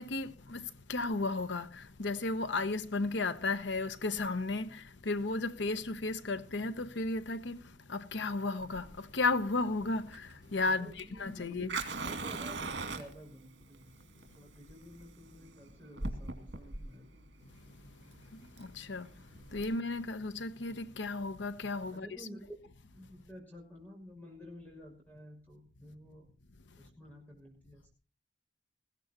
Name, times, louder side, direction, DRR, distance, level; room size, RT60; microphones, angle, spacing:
voice 1, 0.0-10.9 11.2-11.8 18.3-19.1 19.5-22.1, left 3 dB, 85° left, 0.9 m, -34 dB
Fire, 8.6-19.7, right 3 dB, 75° right, 2.4 m, -42 dB
voice 2, 10.8-11.8 12.0-14.0 14.3-17.2 21.9-22.5 22.9-26.3 26.8-27.9, equal, 10° left, 6.1 m, -51 dB
20.0 x 16.0 x 2.9 m
head